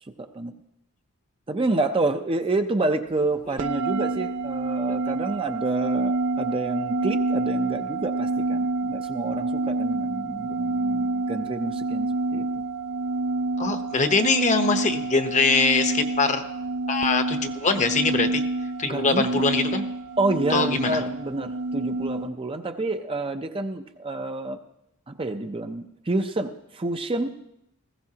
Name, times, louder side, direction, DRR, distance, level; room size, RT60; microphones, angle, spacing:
voice 1, 0.2-0.5 1.5-12.5 18.8-19.4 20.2-24.6 25.1-27.4, right 2 dB, 25° right, 6 dB, 0.6 m, -28 dB
sound 1, 3.6-22.3, right 3 dB, 85° right, 0.6 m, -28 dB
voice 2, 13.6-16.4 16.9-18.4 18.8-19.8 20.5-21.0, left 4 dB, 35° left, 7 dB, 0.9 m, -23 dB
19.5 x 15.5 x 2.9 m, 0.83 s
head